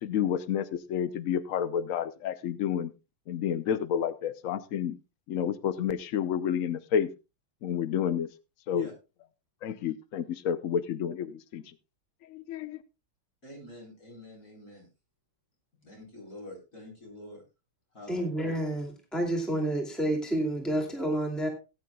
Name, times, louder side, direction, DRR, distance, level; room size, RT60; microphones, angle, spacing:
voice 1, 0.0-2.9 3.3-5.0 5.3-7.1 7.6-8.3 8.7-8.9 9.6-11.7 12.3-12.8, left 8 dB, 90° left, 13 dB, 0.7 m, -30 dB
voice 2, 13.4-14.9 15.7-17.4 17.9-18.3, left 1 dB, 40° left, 0 dB, 4.8 m, -46 dB
voice 3, 18.1-21.5, right 1 dB, ahead, 2 dB, 2.3 m, -29 dB
18.0 x 9.4 x 2.3 m, 0.27 s
omnidirectional pair, 2.3 m